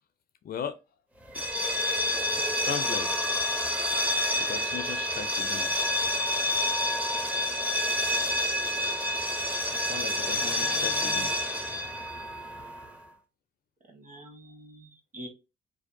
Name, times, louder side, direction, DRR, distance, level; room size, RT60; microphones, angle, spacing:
voice 1, 0.4-0.8 1.3-3.6 4.4-5.8 9.6-11.9 14.2-14.3, left 8 dB, 50° left, 0.4 m, -39 dB
sound 1, 1.3-13.0, left 1 dB, 5° right, 0.5 m, -28 dB
voice 2, 10.3-11.3 13.9-14.9 15.1-15.3, right 1 dB, 40° right, 1.1 m, -44 dB
2.6 x 2.1 x 2.5 m
cardioid pair, 90°, 20 cm